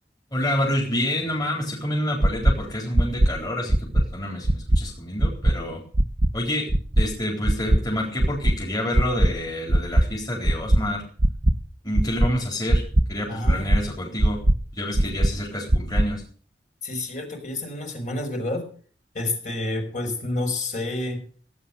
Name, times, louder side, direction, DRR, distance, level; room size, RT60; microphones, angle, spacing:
voice 1, 0.3-5.8 6.3-6.7 7.0-11.0 11.8-12.8 13.1-14.4 14.7-16.2, left 1 dB, 20° left, -2 dB, 4.3 m, -28 dB
sound 1, 2.2-2.5 2.9-3.3 3.7-4.0 4.4-4.8 5.2-5.5 5.9-6.3 6.7-7.0 7.4-7.8 8.2-8.5 8.9-9.3 9.7-10.0 10.4-10.8 11.2-11.5 11.9-12.3 12.7-13.0 13.4-13.8 14.2-14.5 14.9-15.3 15.7-16.0, right 1 dB, 40° right, 0.9 m, -18 dB
voice 2, 13.3-13.8 15.0-15.1 16.8-18.7 19.1-21.2, left 2 dB, 45° left, 4 dB, 5.5 m, -29 dB
17.0 x 9.6 x 7.2 m, 0.44 s
head